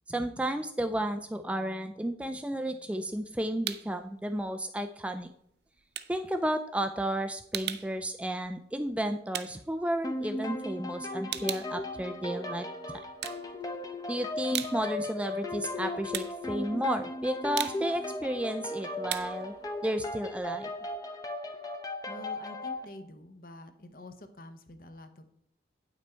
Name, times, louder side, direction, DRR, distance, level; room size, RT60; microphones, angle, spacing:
voice 1, 0.1-5.3 6.1-12.7 14.1-19.5 19.8-20.7, right 1 dB, 5° right, 7 dB, 0.3 m, -32 dB
sound 1, 2.8-4.0 4.4-10.6 10.9-12.7 13.1-14.0 14.3-21.0, right 11 dB, 70° right, 0.5 m, -40 dB
sound 2, 10.0-22.8, left 2 dB, 20° left, 0.7 m, -37 dB
voice 2, 22.0-25.3, left 1 dB, 50° left, 8 dB, 0.9 m, -47 dB
9.1 x 6.0 x 4.4 m, 0.71 s
head